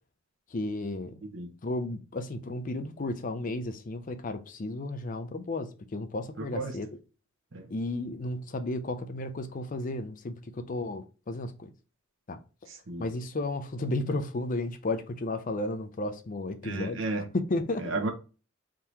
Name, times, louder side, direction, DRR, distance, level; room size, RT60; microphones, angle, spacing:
voice 1, 0.5-1.2 1.6-6.9 7.7-11.7 12.3-12.4 13.0-17.0 17.3-18.0, left 2 dB, 40° left, 0.5 m, -33 dB
voice 2, 6.4-6.7 7.5-7.6 12.7-13.0 16.6-17.3 17.8-18.1, right 2 dB, 70° right, 1.0 m, -33 dB
3.7 x 2.8 x 4.5 m
head